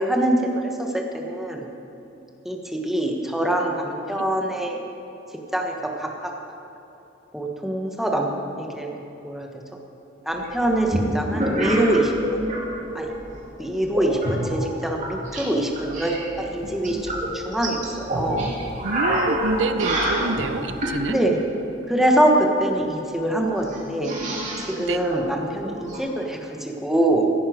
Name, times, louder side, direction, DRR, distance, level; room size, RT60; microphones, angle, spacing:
voice 1, 0.0-1.6 2.4-4.8 5.5-6.3 7.3-9.0 9.2-9.5 10.3-12.6 12.9-13.1 13.6-18.5 21.1-21.4 21.9-24.2 24.7-27.3, right 1 dB, ahead, 0 dB, 1.2 m, -24 dB
sound 1, 10.4-12.6 12.9-13.4 13.9-15.4 15.7-21.0 22.7-22.8 23.0-23.1 23.4-26.0, right 1 dB, 40° right, 2.5 m, -27 dB
voice 2, 18.8-21.2 24.8-25.0, right 3 dB, 85° right, 11 dB, 0.6 m, -27 dB
16.5 x 9.8 x 5.1 m, 3.0 s
head